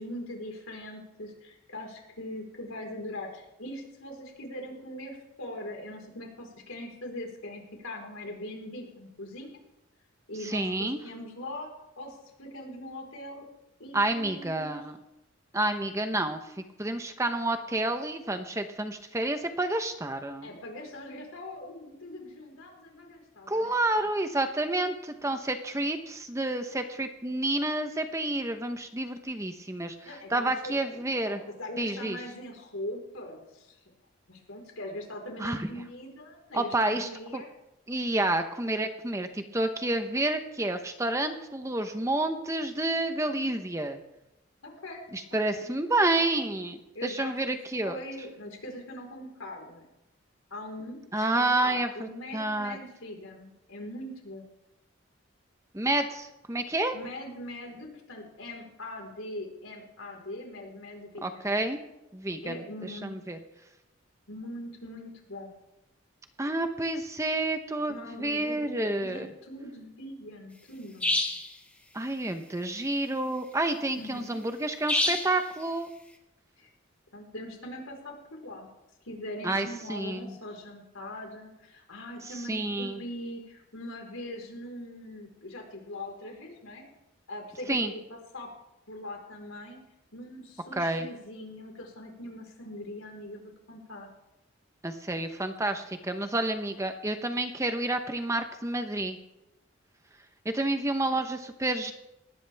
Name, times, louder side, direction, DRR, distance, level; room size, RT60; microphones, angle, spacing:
voice 1, 0.0-9.5 10.3-13.4 13.8-14.8 20.4-23.8 26.7-26.8 30.0-33.8 34.3-37.5 44.6-45.0 45.5-45.7 46.9-47.6 47.8-49.9 50.5-54.5 56.9-61.5 62.4-63.1 64.3-65.5 67.9-71.2 74.0-74.4 76.6-76.7 77.1-78.7 79.0-86.8 87.3-88.5 88.9-89.8 90.1-94.1, left 1 dB, 75° left, 1 dB, 4.4 m, -41 dB
voice 2, 10.4-11.0 13.9-15.0 15.5-16.5 16.8-20.5 23.5-31.4 31.8-32.2 35.4-35.7 36.5-37.4 37.9-44.0 45.1-48.0 51.1-52.8 55.7-57.0 61.2-61.8 62.1-63.4 66.4-69.3 71.9-75.9 79.4-80.3 82.2-83.0 87.7-87.9 90.8-91.1 94.8-99.2 100.4-101.9, right 2 dB, 15° right, 7 dB, 0.9 m, -29 dB
sound 1, 71.0-71.5 74.9-75.4, left 1 dB, 5° left, 1.4 m, -26 dB
19.5 x 16.0 x 3.5 m, 0.92 s
head